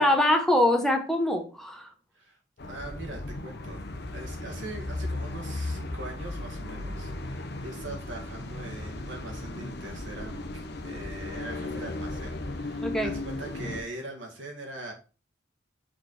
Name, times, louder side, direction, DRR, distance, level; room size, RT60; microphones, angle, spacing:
voice 1, 0.0-1.9 12.8-13.1, left 1 dB, ahead, 1.1 m, -23 dB
sound 1, 2.6-13.8, left 2 dB, 60° left, 0.9 m, -36 dB
voice 2, 2.7-3.8 4.1-14.9, right 2 dB, 90° right, 2.2 m, -42 dB
6.1 x 4.3 x 4.7 m
head